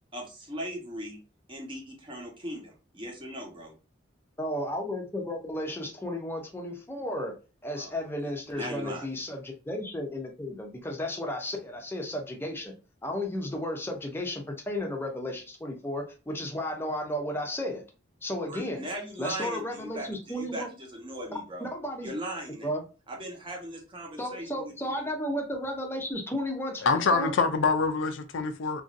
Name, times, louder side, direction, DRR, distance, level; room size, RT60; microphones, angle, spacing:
voice 1, 0.1-1.2 1.5-3.8 7.7-8.0 8.5-9.1 18.5-21.7 22.0-22.7 23.1-25.1, right 1 dB, 25° right, 0.9 m, -39 dB
voice 2, 4.4-7.3 7.6-12.7 13.0-17.8 18.2-18.8 19.2-20.7 21.6-22.1 22.6-22.8 24.2-27.3, left 1 dB, 10° left, 0.6 m, -33 dB
voice 3, 26.8-28.8, left 4 dB, 75° left, 0.4 m, -25 dB
2.9 x 2.6 x 2.5 m
head